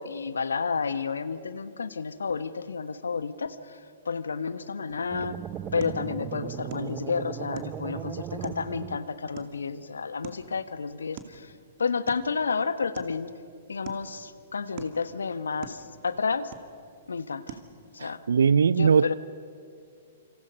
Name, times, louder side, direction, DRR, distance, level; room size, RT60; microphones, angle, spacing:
voice 1, 0.0-3.8 4.0-5.4 5.7-11.5 11.8-13.3 13.7-16.5 17.1-17.6 17.9-18.2 18.7-19.1, left 5 dB, 80° left, 1.2 m, -31 dB
sound 1, 4.9-18.3, right 8 dB, 45° right, 2.3 m, -48 dB
sound 2, 5.1-9.4, right 10 dB, 25° right, 0.8 m, -37 dB
voice 2, 18.0-19.1, right 6 dB, 70° right, 0.5 m, -21 dB
28.0 x 26.5 x 5.5 m
figure-of-eight pair, 115°, 0 cm